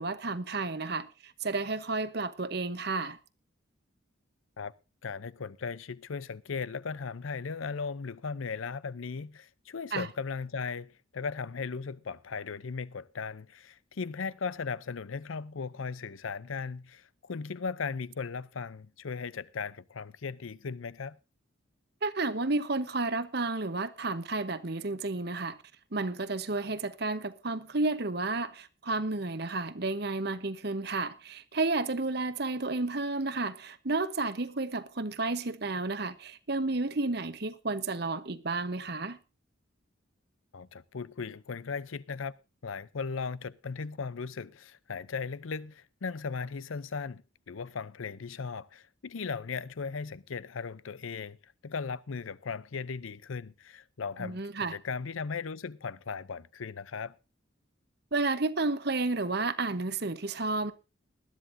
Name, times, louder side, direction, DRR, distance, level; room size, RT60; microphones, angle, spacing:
voice 1, 0.0-3.2 9.9-10.1 22.0-25.6 25.9-39.2 54.2-54.8 58.1-60.7, right 3 dB, 55° right, 1.0 m, -31 dB
voice 2, 5.0-21.2 40.5-42.3 42.6-54.4 54.7-57.2, left 5 dB, 85° left, 0.6 m, -37 dB
20.0 x 12.5 x 2.7 m
head